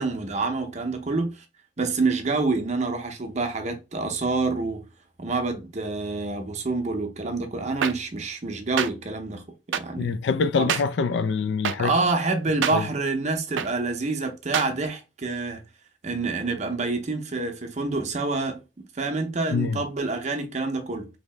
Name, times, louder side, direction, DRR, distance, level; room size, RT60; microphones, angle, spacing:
voice 1, 0.0-1.4 1.8-4.8 5.2-10.1 10.6-10.7 11.8-15.6 16.0-18.6 19.0-21.1, right 3 dB, 40° right, 0.6 m, -27 dB
sound 1, 7.8-7.9 8.8-8.9 9.7-9.8 10.7-10.8 11.6-11.8 12.6-12.7 13.6-13.7 14.5-14.7, right 8 dB, 75° right, 0.4 m, -24 dB
voice 2, 10.0-11.9 12.7-12.9 19.5-19.8, left 5 dB, 65° left, 0.3 m, -25 dB
3.1 x 2.7 x 3.2 m
head